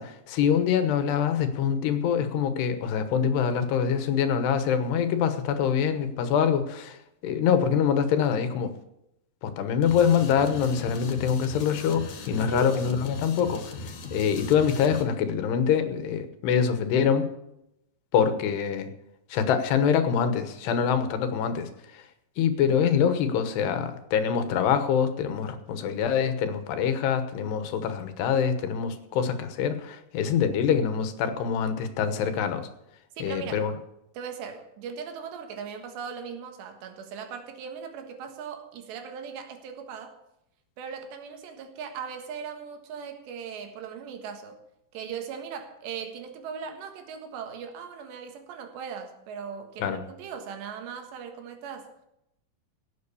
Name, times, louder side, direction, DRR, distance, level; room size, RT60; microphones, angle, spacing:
voice 1, 0.0-7.0 7.2-8.7 9.4-17.3 18.1-18.9 19.3-21.7 22.4-32.7 33.2-33.7 49.8-50.0, left 7 dB, 75° left, 9 dB, 3.2 m, -25 dB
sound 1, 9.8-15.1, left 3 dB, 55° left, 2.9 m, -39 dB
voice 2, 12.5-13.1 33.2-33.7 34.2-40.2 40.8-44.6 44.9-51.9, right 6 dB, 85° right, 6 dB, 3.8 m, -39 dB
17.0 x 7.9 x 6.9 m, 0.83 s
omnidirectional pair, 4.9 m